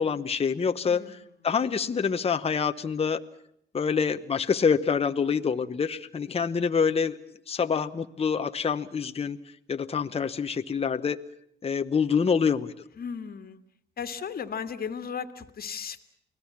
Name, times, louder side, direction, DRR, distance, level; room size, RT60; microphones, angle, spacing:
voice 1, 0.0-1.0 1.4-3.2 3.7-7.2 7.5-9.4 9.7-11.2 11.6-12.7, left 6 dB, 30° left, 8 dB, 0.9 m, -26 dB
voice 2, 0.9-1.3 13.0-13.6 14.0-16.0, left 7 dB, 50° left, 9 dB, 1.8 m, -36 dB
29.0 x 19.0 x 7.2 m, 0.71 s
cardioid pair, 90°, 20 cm